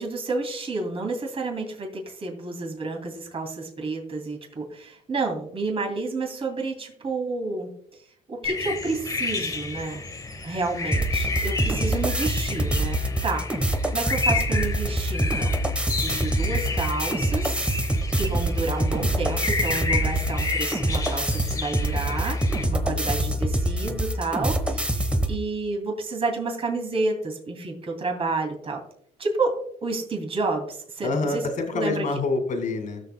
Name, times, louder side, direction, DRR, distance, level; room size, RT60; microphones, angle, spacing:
voice 1, 0.0-8.0 8.3-10.1 10.4-13.5 13.9-15.5 15.9-17.9 18.1-28.8 29.2-29.5 29.8-31.4 31.7-32.0, right 3 dB, 35° right, 2 dB, 2.5 m, -30 dB
sound 1, 8.4-22.6, left 4 dB, 20° left, 0.9 m, -31 dB
sound 2, 10.9-25.4, right 1 dB, 5° right, 1.1 m, -25 dB
voice 2, 22.6-23.7 24.7-25.1 31.0-33.0, left 3 dB, 50° left, 6 dB, 2.2 m, -29 dB
19.5 x 6.6 x 2.2 m, 0.65 s
cardioid pair, 110°, 17 cm